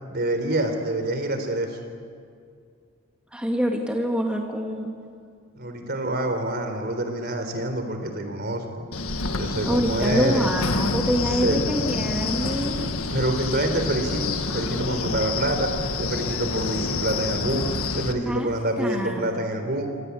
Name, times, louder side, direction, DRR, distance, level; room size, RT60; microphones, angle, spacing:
voice 1, 0.1-1.8 5.5-8.9 9.3-10.5 11.4-11.6 13.1-15.7 16.0-17.6 17.9-19.9, right 1 dB, 45° right, 6 dB, 3.9 m, -26 dB
voice 2, 3.3-4.9 9.6-12.8 18.2-18.5 18.8-19.5, equal, 5° right, 0 dB, 2.2 m, -26 dB
Wind, 8.9-18.1, left 3 dB, 75° left, 1.8 m, -28 dB
28.0 x 25.0 x 8.6 m, 2.2 s
head